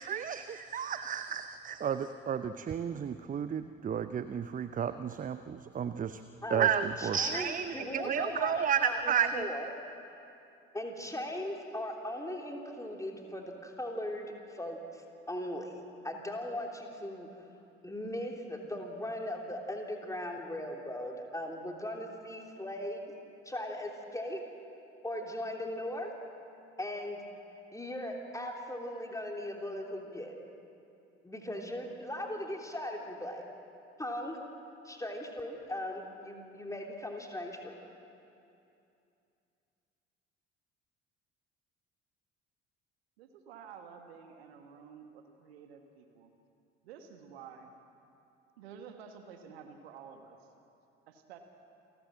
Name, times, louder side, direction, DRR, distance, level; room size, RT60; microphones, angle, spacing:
voice 1, 0.0-0.4 0.7-6.2 6.5-9.5, right 8 dB, 25° right, 12 dB, 0.6 m, -32 dB
voice 2, 6.4-6.7 7.0-9.7 10.7-15.7 16.0-17.3 17.8-23.1 23.4-24.4 25.0-26.1 26.8-27.2 27.7-30.4 31.2-33.4 34.0-34.4 34.8-37.8, left 1 dB, 10° left, 1 dB, 3.1 m, -38 dB
voice 3, 43.2-46.3 46.8-47.7 48.6-50.4 51.1-51.4, right 7 dB, 70° right, 6 dB, 1.6 m, -51 dB
28.0 x 13.0 x 7.5 m, 2.7 s
figure-of-eight pair, 50°, 32 cm